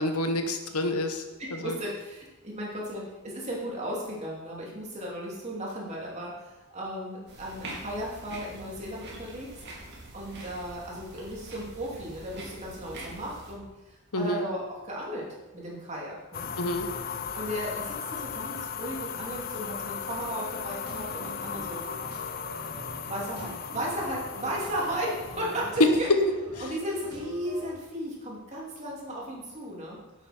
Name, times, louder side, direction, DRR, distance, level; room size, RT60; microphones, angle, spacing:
voice 1, 0.0-1.2 1.6-1.8 14.1-14.5 16.6-16.9, left 1 dB, 90° left, 5 dB, 1.3 m, -28 dB
voice 2, 1.4-9.6 10.1-15.3 15.5-16.5 17.3-21.8 23.1-26.1 26.6-30.0, equal, 30° right, -4 dB, 3.0 m, -35 dB
sound 1, 7.3-13.5, right 2 dB, 50° right, 2.7 m, -44 dB
sound 2, 16.3-25.7, left 7 dB, 40° left, 0.6 m, -37 dB
sound 3, 20.8-27.7, right 1 dB, 80° right, 3.6 m, -44 dB
11.0 x 8.5 x 4.5 m, 1.1 s
head